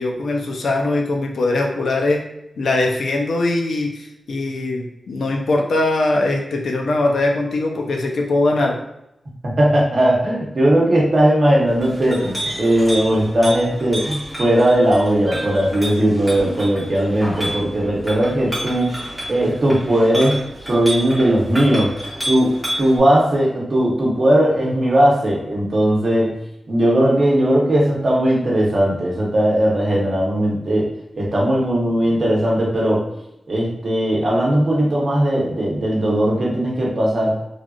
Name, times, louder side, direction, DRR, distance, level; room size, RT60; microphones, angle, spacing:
voice 1, 0.0-2.2 2.6-8.8, left 2 dB, 85° left, 1 dB, 0.5 m, -21 dB
voice 2, 9.4-26.4 26.7-33.1 33.5-37.4, right 1 dB, 45° right, -4 dB, 0.8 m, -18 dB
Chink clink, 11.7-23.0, equal, ahead, 1.0 m, -30 dB
3.2 x 2.4 x 2.4 m, 0.85 s
wide cardioid pair, 155°, 0 cm